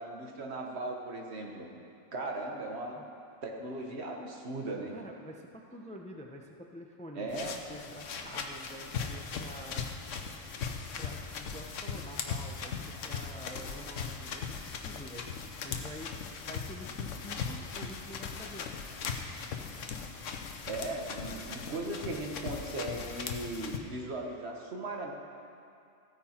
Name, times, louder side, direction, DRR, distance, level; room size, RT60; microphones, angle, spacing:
voice 1, 0.0-1.7 2.1-3.0 3.4-4.9 7.1-7.6 20.7-25.1, right 2 dB, 60° right, 1 dB, 1.5 m, -38 dB
voice 2, 4.9-9.9 11.0-14.6 14.8-15.3 15.6-16.1 16.4-18.7, equal, 10° left, 1 dB, 0.5 m, -47 dB
sound 1, 7.3-23.8, left 6 dB, 90° left, 1.2 m, -39 dB
14.5 x 9.7 x 4.4 m, 2.5 s
omnidirectional pair, 1.3 m